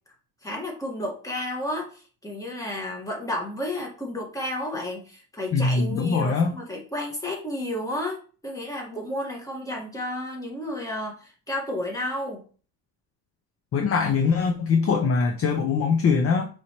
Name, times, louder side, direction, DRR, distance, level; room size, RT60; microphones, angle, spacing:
voice 1, 0.4-12.4, left 1 dB, 10° left, -1 dB, 1.4 m, -32 dB
voice 2, 5.5-6.6 13.7-16.5, left 5 dB, 35° left, 5 dB, 0.5 m, -22 dB
5.2 x 3.2 x 2.9 m, 0.39 s
cardioid pair, 115°, 42 cm